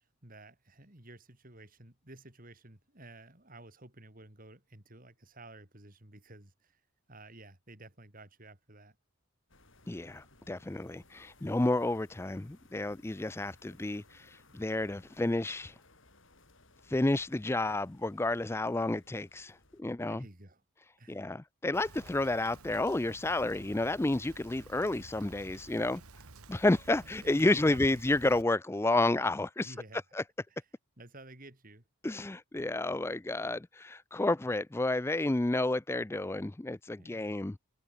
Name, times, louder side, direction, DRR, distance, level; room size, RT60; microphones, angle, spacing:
voice 1, 0.0-6.8 7.1-9.0 20.1-20.6 21.0-21.2 27.2-28.0 29.6-30.0 31.0-31.8 37.0-37.3, right 2 dB, 40° right, 3.3 m, -52 dB
sound 1, 9.5-19.8, left 2 dB, 55° left, 6.8 m, -62 dB
voice 2, 9.9-15.7 16.9-20.2 21.1-26.0 26.5-29.7 30.1-30.2 32.0-37.6, left 2 dB, 10° left, 0.3 m, -30 dB
Rain, 21.7-28.4, right 3 dB, 80° right, 2.2 m, -52 dB
head